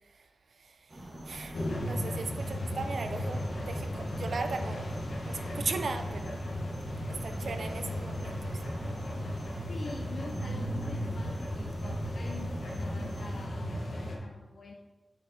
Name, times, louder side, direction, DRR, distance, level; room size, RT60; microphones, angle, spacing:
voice 1, 0.6-4.9 5.2-6.3 7.1-8.6, right 4 dB, 75° right, 7 dB, 0.4 m, -38 dB
sound 1, 0.9-13.5, equal, 35° right, 1.2 m, -45 dB
sound 2, 1.5-14.2, equal, 85° left, 1.0 m, -35 dB
voice 2, 9.7-14.7, left 3 dB, 60° left, 0 dB, 0.5 m, -46 dB
8.7 x 4.4 x 2.7 m, 1.3 s
wide cardioid pair, 95°, 0 cm